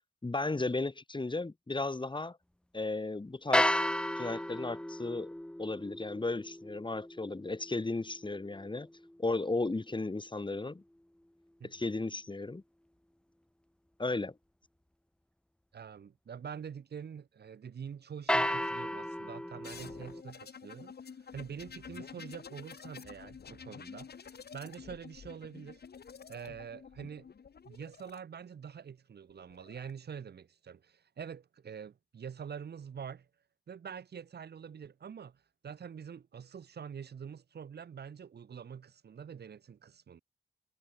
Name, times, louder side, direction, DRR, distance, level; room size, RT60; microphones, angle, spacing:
voice 1, 0.2-2.4 2.7-3.8 4.2-5.3 5.6-8.9 9.2-10.8 11.6-12.6 14.0-14.3, left 2 dB, 25° left, 3.7 m, -35 dB
sound 1, 3.5-9.7 18.3-20.2, left 1 dB, 5° left, 1.0 m, -34 dB
voice 2, 15.7-20.9 21.3-25.8 26.3-27.3 27.7-33.3 33.7-40.2, right 7 dB, 65° right, 2.1 m, -45 dB
sound 2, 19.6-28.2 29.3-29.9, left 6 dB, 65° left, 4.1 m, -50 dB
cardioid pair, 60°, 18 cm